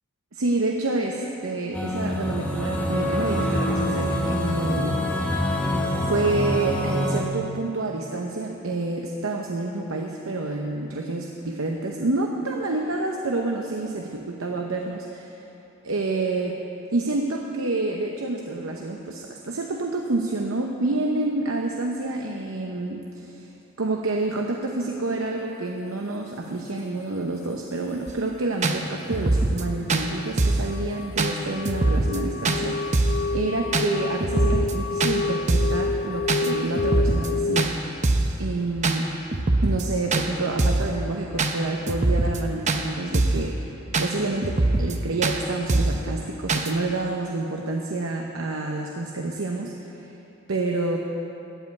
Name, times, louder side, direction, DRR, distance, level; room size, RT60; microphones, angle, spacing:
voice 1, 0.3-5.4 6.0-15.3 15.8-16.6 16.9-23.5 23.8-37.7 38.4-39.1 39.6-50.1 50.5-51.0, right 2 dB, 85° right, 1 dB, 0.8 m, -28 dB
sound 1, 1.7-7.2, left 1 dB, 5° left, 1.0 m, -25 dB
sound 2, 28.1-28.2 28.6-28.8 29.1-29.6 29.9-30.0 30.4-30.7 31.2-31.3 31.7-32.2 32.4-32.6 32.9-33.2 33.7-33.9 34.2-34.7 35.0-35.2 35.5-35.8 36.3-36.5 36.8-37.3 37.6-37.7 38.0-38.3 38.8-39.0 39.3-39.8 40.1-40.3 40.6-40.9 41.4-41.5 41.9-42.4 42.7-42.8 43.1-43.5 43.9-44.1 44.4-45.0 45.2-45.4 45.7-46.0 46.5-46.7, right 2 dB, 35° right, 0.7 m, -22 dB
sound 3, 29.3-37.6, left 4 dB, 50° left, 0.4 m, -29 dB
15.0 x 5.4 x 9.3 m, 3.0 s
head